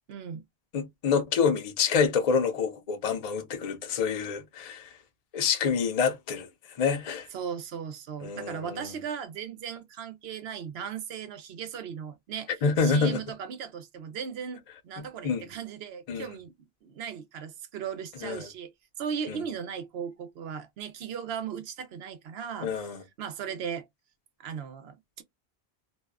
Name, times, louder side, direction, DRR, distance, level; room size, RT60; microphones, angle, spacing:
voice 1, 0.1-0.4 7.3-16.5 16.8-18.7 19.0-23.9 24.4-25.2, right 7 dB, 80° right, 0.8 m, -37 dB
voice 2, 0.7-4.9 5.3-6.5 6.8-7.3 8.2-8.8 12.6-13.2 15.2-15.4 16.1-16.3 18.2-18.4 22.6-23.0, left 6 dB, 50° left, 0.5 m, -27 dB
2.5 x 2.1 x 2.2 m
omnidirectional pair, 1.0 m